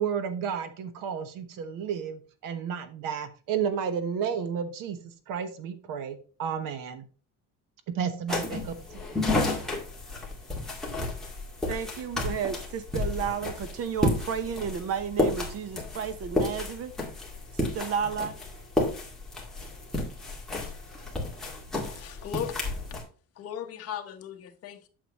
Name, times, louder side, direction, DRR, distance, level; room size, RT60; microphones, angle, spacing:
voice 1, 0.0-7.0 7.9-9.0 9.4-9.8, right 7 dB, 65° right, 1.2 m, -32 dB
sound 1, 8.3-23.0, left 2 dB, ahead, 2.1 m, -32 dB
voice 2, 11.7-16.9 17.5-18.4, right 7 dB, 45° right, 0.9 m, -32 dB
voice 3, 21.9-22.7 23.4-24.9, left 9 dB, 45° left, 1.2 m, -37 dB
8.7 x 7.0 x 3.0 m
cardioid pair, 170°, 34 cm